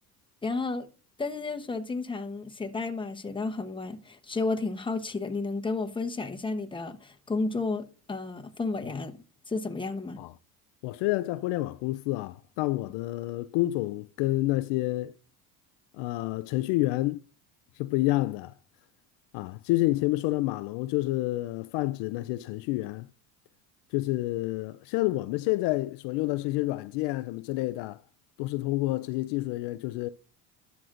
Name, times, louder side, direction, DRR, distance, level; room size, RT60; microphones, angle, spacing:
voice 1, 0.4-0.9 1.2-10.2, left 3 dB, 10° left, 0.9 m, -32 dB
voice 2, 10.8-15.1 16.0-17.2 17.8-18.5 19.3-23.1 23.9-28.0 28.4-30.1, left 18 dB, 65° left, 0.5 m, -29 dB
12.0 x 6.0 x 2.5 m
hypercardioid pair, 75°, 46 cm